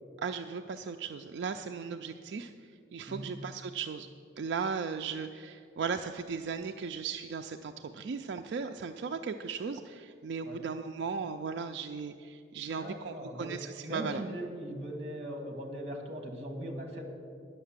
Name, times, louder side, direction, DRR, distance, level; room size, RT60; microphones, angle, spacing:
voice 1, 0.2-2.5 2.9-4.1 4.4-14.2, right 5 dB, 65° right, 6 dB, 0.3 m, -37 dB
voice 2, 12.7-13.6 13.8-17.1, right 1 dB, 35° right, 3 dB, 1.4 m, -39 dB
10.0 x 6.6 x 7.3 m, 2.4 s
head